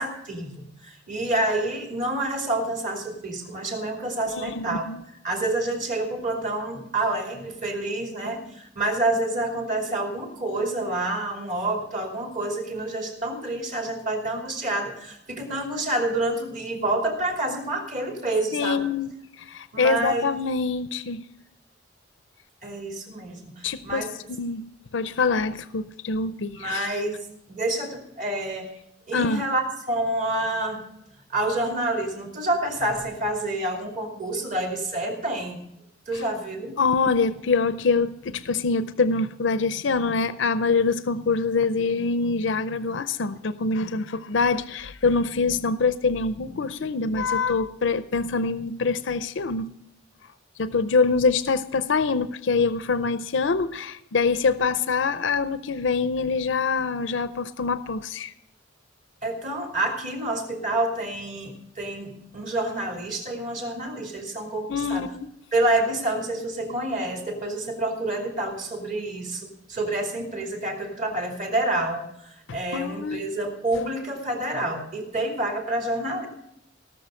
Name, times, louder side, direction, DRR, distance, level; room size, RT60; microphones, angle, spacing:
voice 1, 0.0-4.9 5.2-18.9 19.7-20.3 22.6-24.1 26.5-27.2 27.5-28.7 29.1-30.8 31.3-35.6 36.1-36.8 59.2-65.0 65.5-76.3, right 1 dB, 40° right, 1 dB, 2.9 m, -28 dB
voice 2, 4.3-5.0 18.5-19.1 19.5-21.2 23.6-24.7 24.9-26.9 29.1-29.4 36.8-49.7 50.6-58.3 64.7-65.3 72.5-73.2, left 4 dB, 80° left, 13 dB, 0.6 m, -25 dB
17.5 x 6.6 x 6.4 m, 0.79 s
head